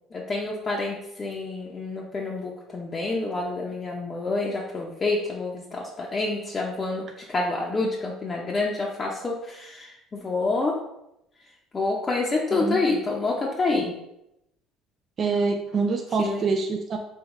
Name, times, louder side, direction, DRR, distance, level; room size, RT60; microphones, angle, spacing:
voice 1, 0.1-10.8 11.7-13.9 16.2-16.4, left 3 dB, 30° left, -3 dB, 0.6 m, -28 dB
voice 2, 15.2-17.0, right 4 dB, 45° right, 3 dB, 0.4 m, -25 dB
3.6 x 3.0 x 3.0 m, 0.84 s
supercardioid pair, 85°, 0 cm